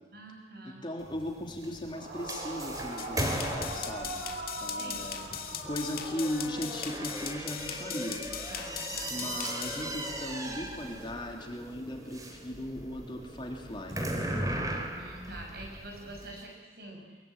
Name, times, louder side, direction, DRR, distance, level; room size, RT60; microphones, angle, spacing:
voice 1, 0.1-0.8 4.6-5.0 8.5-9.5 14.9-17.0, right 1 dB, 60° right, 1 dB, 6.9 m, -46 dB
voice 2, 0.6-4.2 4.6-5.3 5.6-8.2 9.1-14.0, left 1 dB, 25° left, 1 dB, 3.2 m, -37 dB
sound 1, 1.0-16.4, right 1 dB, 20° right, 2.9 m, -38 dB
Yell / Screaming, 1.9-6.8, right 1 dB, 40° right, 6.9 m, -41 dB
sound 2, 3.0-9.8, left 9 dB, 55° left, 2.0 m, -39 dB
23.5 x 22.5 x 9.0 m, 1.5 s
head